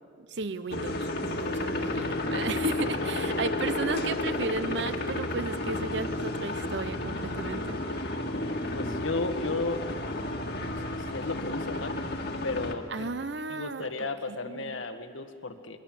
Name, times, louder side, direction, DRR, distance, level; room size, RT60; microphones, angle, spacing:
voice 1, 0.2-8.1 12.9-14.8, right 3 dB, 60° right, 13 dB, 0.8 m, -35 dB
sound 1, 0.7-12.7, left 1 dB, 50° left, 1.9 m, -32 dB
voice 2, 8.2-9.8 10.6-12.0 12.4-13.1 13.5-15.8, left 3 dB, 75° left, 6 dB, 1.6 m, -34 dB
26.0 x 22.5 x 7.5 m, 2.1 s
head